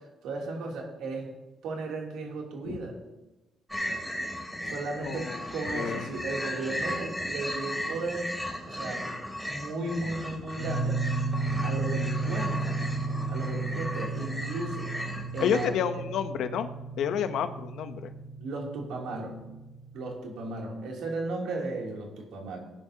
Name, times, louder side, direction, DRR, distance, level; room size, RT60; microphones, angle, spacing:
voice 1, 0.2-1.3 1.6-3.0 4.6-8.3 8.7-11.0 11.6-12.8 13.3-14.9 15.3-15.8 18.4-19.4 19.9-22.6, right 2 dB, 85° right, -1 dB, 2.9 m, -35 dB
sound 1, 3.7-15.7, left 1 dB, ahead, 3.0 m, -36 dB
voice 2, 5.0-5.4 5.7-6.0 15.4-16.7 17.0-18.1, left 8 dB, 80° left, 10 dB, 0.8 m, -29 dB
sound 2, 10.6-20.1, right 3 dB, 35° left, 1.8 m, -33 dB
17.5 x 10.5 x 2.8 m, 1.0 s
cardioid pair, 90°, 0 cm